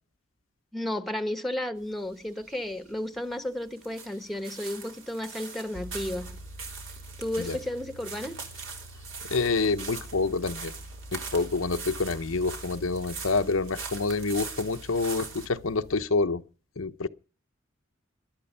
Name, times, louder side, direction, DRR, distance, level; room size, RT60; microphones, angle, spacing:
voice 1, 0.7-6.4 7.2-8.3, left 1 dB, ahead, 1.2 m, -33 dB
sound 1, 1.8-15.5, right 5 dB, 65° right, 4.0 m, -42 dB
sound 2, 5.7-16.0, right 1 dB, 85° right, 4.1 m, -46 dB
voice 2, 9.3-10.7 11.1-16.4 16.8-17.1, left 3 dB, 85° left, 0.9 m, -27 dB
21.0 x 12.0 x 5.6 m
head